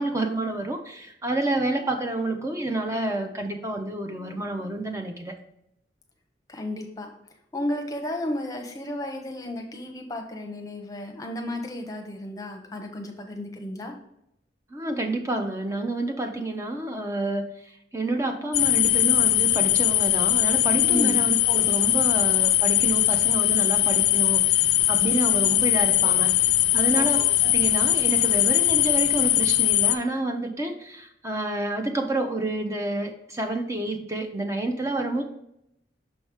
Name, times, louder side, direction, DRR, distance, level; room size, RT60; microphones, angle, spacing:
voice 1, 0.0-5.3 14.7-27.2 27.4-35.2, right 2 dB, 15° right, 4 dB, 0.5 m, -29 dB
voice 2, 6.5-7.1 7.5-13.9 20.8-21.2 26.9-27.3, left 1 dB, 20° left, 3 dB, 0.8 m, -33 dB
sound 1, 18.5-30.0, left 14 dB, 65° left, 0.4 m, -21 dB
6.3 x 4.8 x 3.4 m, 0.80 s
head